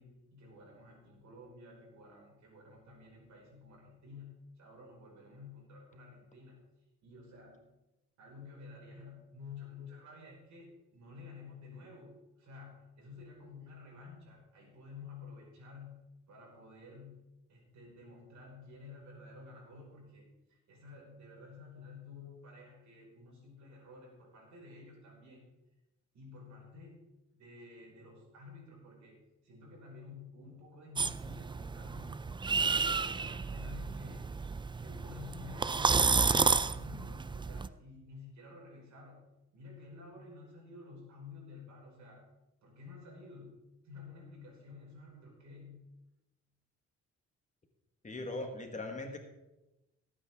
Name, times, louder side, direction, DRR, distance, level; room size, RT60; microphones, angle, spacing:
voice 1, 0.0-6.6 7.0-7.7 8.2-16.0 16.3-17.2 17.5-25.5 26.1-27.0 27.3-32.2 32.6-34.3 34.8-39.2 39.5-42.3 42.6-43.6 43.8-45.8, left 4 dB, 65° right, -1 dB, 5.2 m, -52 dB
sound 1, 31.0-37.7, right 4 dB, 15° right, 0.4 m, -31 dB
voice 2, 48.0-49.2, left 2 dB, 25° left, 4 dB, 1.7 m, -39 dB
18.0 x 8.8 x 3.7 m, 0.98 s
cardioid pair, 90°, 30 cm